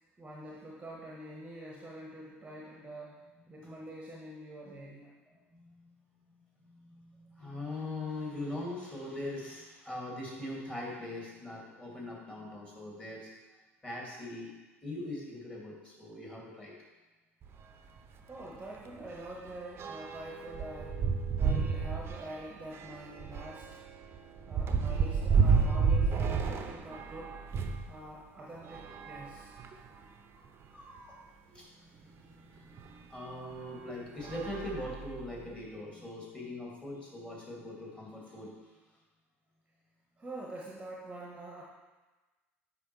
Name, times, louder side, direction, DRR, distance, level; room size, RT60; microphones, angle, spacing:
voice 1, 0.2-3.2 3.5-5.1 18.2-21.1 21.4-23.8 24.4-27.4 27.9-29.6 37.9-38.0 40.2-41.6, right 1 dB, 15° right, -3 dB, 1.0 m, -45 dB
voice 2, 3.6-3.9 5.3-5.9 6.3-14.5 14.8-16.7 29.9-30.0 30.3-30.5 30.7-31.2 31.5-38.8, left 1 dB, 15° left, -4 dB, 2.2 m, -42 dB
sound 1, 17.4-17.6 18.0-18.1 18.4-27.9 28.6-30.0 30.6-30.7 31.0-31.1 32.8-32.9 33.5-33.7 34.2-35.5, right 5 dB, 35° right, 0.6 m, -31 dB
8.2 x 5.3 x 3.1 m, 1.2 s
figure-of-eight pair, 70°, 7 cm